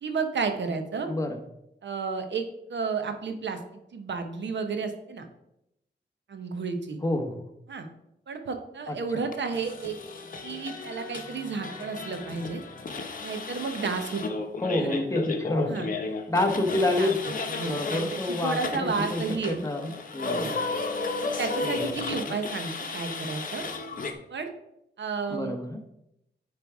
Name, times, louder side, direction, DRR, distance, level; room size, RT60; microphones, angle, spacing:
voice 1, 0.0-1.1 1.8-3.6 3.9-5.3 6.3-7.0 7.7-7.9 8.3-10.0 10.4-12.6 13.2-14.4 14.8-15.0 15.7-15.9 17.0-17.1 17.4-19.9 20.2-20.6 21.2-23.6 24.3-24.5 25.0-25.5, right 4 dB, 80° right, 6 dB, 1.0 m, -32 dB
voice 2, 1.1-1.4 7.0-7.5 8.9-9.2 14.6-15.8 16.3-17.2 17.7-20.6 21.6-21.9 25.3-25.8, left 2 dB, 15° left, 4 dB, 0.9 m, -28 dB
sound 1, 9.3-24.1, left 3 dB, 50° left, 0.8 m, -34 dB
9.2 x 3.3 x 4.7 m, 0.82 s
wide cardioid pair, 130°, 19 cm